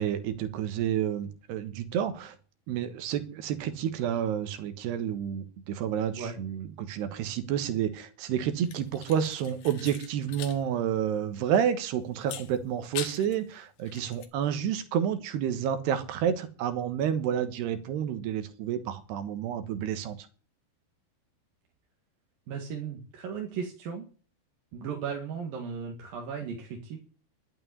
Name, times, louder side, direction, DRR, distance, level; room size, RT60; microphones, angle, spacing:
voice 1, 0.0-2.4 2.7-20.2, right 9 dB, 85° right, 10 dB, 3.5 m, -30 dB
sound 1, 8.6-10.6 10.9-11.0 12.2-13.4 13.8-14.3, left 10 dB, 65° left, 2.7 m, -42 dB
voice 2, 22.5-24.1 24.7-27.0, right 6 dB, 65° right, 1 dB, 3.6 m, -36 dB
11.5 x 8.7 x 9.8 m, 0.38 s
omnidirectional pair, 4.6 m